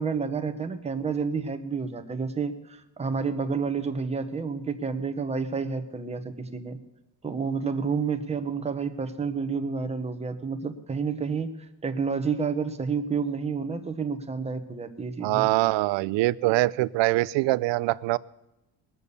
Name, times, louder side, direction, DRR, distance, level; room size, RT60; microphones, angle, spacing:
voice 1, 0.0-6.8 7.2-11.5 11.8-15.5, right 5 dB, 15° right, 7 dB, 0.9 m, -30 dB
voice 2, 15.2-18.2, right 18 dB, 70° right, 19 dB, 0.5 m, -23 dB
20.5 x 7.0 x 6.8 m, 0.92 s
cardioid pair, 155°, 45 cm